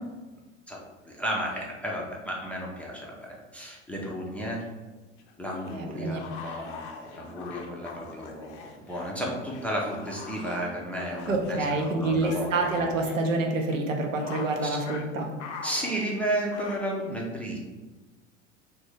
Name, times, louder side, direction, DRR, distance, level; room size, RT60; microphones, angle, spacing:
voice 1, 1.1-4.6 5.4-12.5 14.6-14.8 15.6-17.6, equal, 5° left, -3 dB, 0.4 m, -33 dB
sound 1, 5.2-9.1 9.5-13.3 13.6-13.8 14.2-14.5 14.8-15.0 15.4-16.8, left 5 dB, 65° left, 0.6 m, -43 dB
voice 2, 5.7-6.2 11.3-15.3, right 2 dB, 80° right, 2 dB, 0.6 m, -27 dB
2.8 x 2.6 x 3.4 m, 1.2 s
figure-of-eight pair, 80°, 38 cm